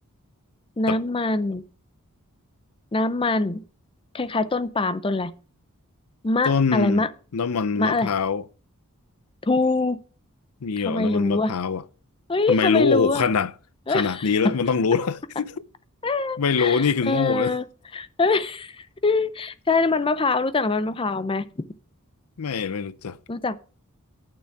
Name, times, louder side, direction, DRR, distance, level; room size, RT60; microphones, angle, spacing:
voice 1, 0.8-1.6 2.9-3.6 4.1-5.3 6.2-7.1 7.8-8.1 9.4-10.0 10.8-11.5 12.3-13.3 13.9-14.5 16.0-17.6 17.9-21.4 23.3-23.6, left 3 dB, 25° left, 0.5 m, -24 dB
voice 2, 6.4-7.0 7.3-8.4 10.6-11.8 12.5-13.5 13.9-15.5 16.4-17.5 22.4-23.2, left 5 dB, 70° left, 0.6 m, -23 dB
9.0 x 6.8 x 5.9 m
head